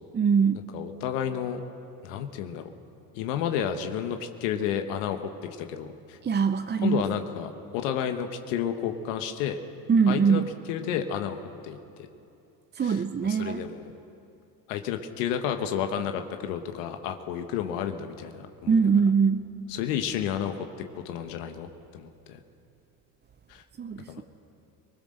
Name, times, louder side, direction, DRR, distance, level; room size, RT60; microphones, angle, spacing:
voice 1, 0.1-0.7 6.2-7.0 9.9-10.5 12.7-13.6 18.7-19.5 23.8-24.2, right 6 dB, 20° right, 9 dB, 0.6 m, -23 dB
voice 2, 0.7-1.6 2.0-2.6 3.1-5.2 5.6-6.2 6.8-9.6 10.1-10.4 10.7-11.4 11.6-11.8 12.8-13.9 14.7-18.9 19.7-20.5 21.0-21.7 21.9-22.4 23.5-23.6 24.1-24.2, left 9 dB, 80° left, 6 dB, 1.3 m, -31 dB
20.5 x 20.0 x 6.5 m, 2.7 s
supercardioid pair, 80°, 48 cm